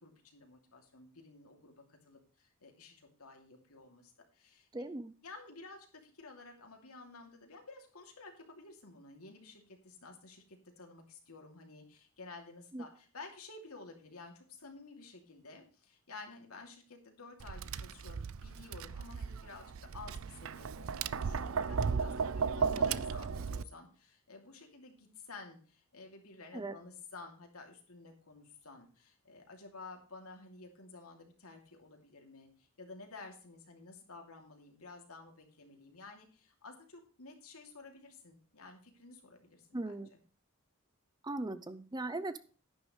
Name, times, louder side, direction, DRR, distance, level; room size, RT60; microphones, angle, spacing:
voice 1, 0.0-4.7 5.2-40.2, left 3 dB, 90° left, 3 dB, 2.9 m, -52 dB
voice 2, 4.7-5.1 12.7-12.8 26.5-26.7 39.7-40.1 41.2-42.4, right 2 dB, 20° right, 13 dB, 0.6 m, -39 dB
Tap, 17.4-23.6, right 5 dB, 70° right, 0.4 m, -35 dB
11.0 x 10.5 x 3.3 m, 0.40 s
head